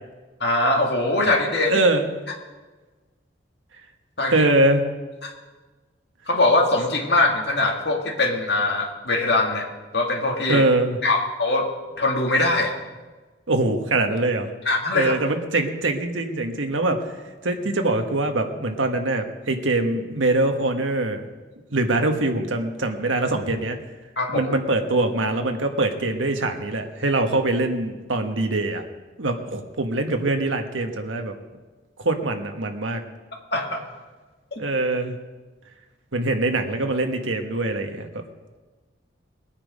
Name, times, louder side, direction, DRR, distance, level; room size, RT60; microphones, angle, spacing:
voice 1, 0.4-1.8 4.2-4.5 5.2-5.3 6.3-9.7 9.9-10.6 11.0-11.7 12.0-12.8 14.7-15.2 24.2-24.5 33.5-33.8 34.5-34.6, left 2 dB, 60° left, 0 dB, 2.3 m, -22 dB
voice 2, 1.7-2.2 4.3-4.8 10.5-11.0 13.5-14.5 14.9-17.0 17.4-21.2 21.7-23.8 24.3-28.8 29.2-31.3 32.0-33.0 34.6-35.2 36.1-38.2, right 2 dB, 90° right, 5 dB, 1.4 m, -23 dB
20.5 x 8.9 x 5.3 m, 1.3 s
head